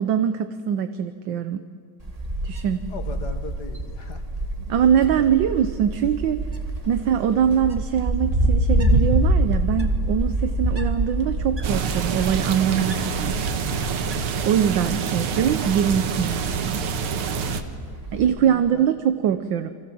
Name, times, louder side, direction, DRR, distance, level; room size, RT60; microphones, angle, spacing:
voice 1, 0.0-1.6 2.4-2.8 4.7-6.5 6.9-13.5 14.4-16.8 18.1-19.7, right 8 dB, 65° right, 10 dB, 1.5 m, -23 dB
Wind, 2.0-18.3, right 1 dB, 20° right, 1.6 m, -26 dB
voice 2, 2.9-4.5 5.0-5.3 17.5-18.1 18.4-18.9, left 5 dB, 50° left, 6 dB, 2.0 m, -39 dB
sound 1, 11.6-17.6, right 6 dB, 85° right, 2.2 m, -27 dB
30.0 x 24.5 x 7.8 m, 2.2 s
omnidirectional pair, 2.3 m